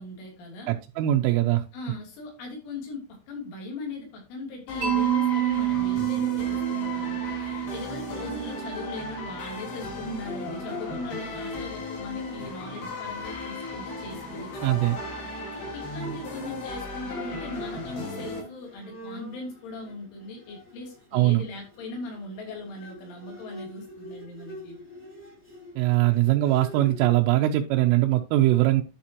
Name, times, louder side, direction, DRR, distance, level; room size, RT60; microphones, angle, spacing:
voice 1, 0.0-0.7 1.7-14.9 15.5-24.8, left 2 dB, 70° left, 0 dB, 5.3 m, -39 dB
voice 2, 0.7-1.6 14.6-15.0 21.1-21.4 25.8-28.8, right 15 dB, 85° right, 3 dB, 3.2 m, -21 dB
sound 1, 4.7-18.4, left 2 dB, 55° left, 5.0 m, -36 dB
Mallet percussion, 4.8-8.8, right 13 dB, 40° right, 3.5 m, -27 dB
Bowed string instrument, 14.2-27.1, equal, 5° left, 1.6 m, -47 dB
11.0 x 7.1 x 2.9 m, 0.29 s
omnidirectional pair, 5.7 m